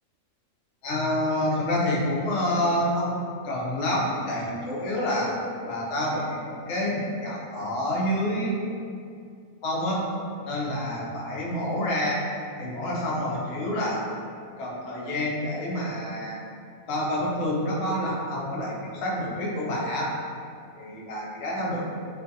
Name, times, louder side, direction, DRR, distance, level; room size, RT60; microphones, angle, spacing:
voice 1, 0.8-8.6 9.6-10.1 10.5-12.2 12.6-14.0 14.6-16.4 16.9-20.1 20.8-21.9, left 1 dB, 65° left, -4 dB, 0.7 m, -28 dB
2.5 x 2.3 x 2.6 m, 2.4 s
omnidirectional pair, 1.5 m